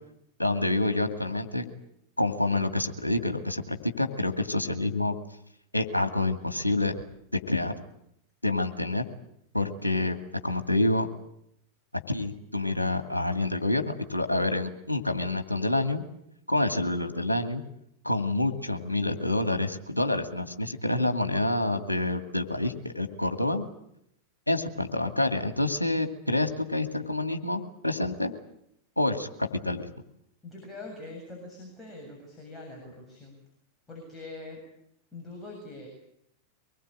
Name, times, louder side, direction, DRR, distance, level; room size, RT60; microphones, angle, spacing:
voice 1, 0.4-1.6 2.2-5.1 5.7-6.9 7.3-7.7 8.4-9.0 9.5-10.2 10.4-11.1 12.1-16.0 16.5-17.6 18.0-23.6 24.5-28.3 29.0-29.9, left 2 dB, 85° left, 7 dB, 2.2 m, -27 dB
voice 2, 30.4-33.4 33.9-34.6 35.1-35.9, left 2 dB, 10° left, -1 dB, 7.6 m, -43 dB
24.5 x 20.5 x 8.9 m, 0.76 s
figure-of-eight pair, 90°, 0 cm